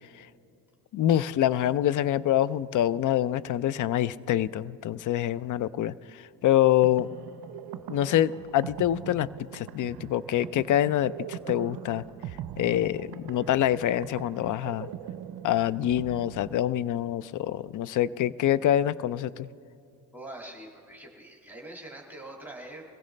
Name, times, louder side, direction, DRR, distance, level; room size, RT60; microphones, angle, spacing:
voice 1, 0.9-7.1 7.9-9.3 9.5-12.0 12.6-14.9 15.4-19.5, left 12 dB, 45° left, 18 dB, 0.4 m, -26 dB
sound 1, 6.5-17.1, right 11 dB, 60° right, 0.5 m, -42 dB
voice 2, 20.1-22.8, right 1 dB, 5° right, -2 dB, 1.9 m, -43 dB
22.5 x 15.5 x 3.3 m, 2.5 s
cardioid pair, 85°, 44 cm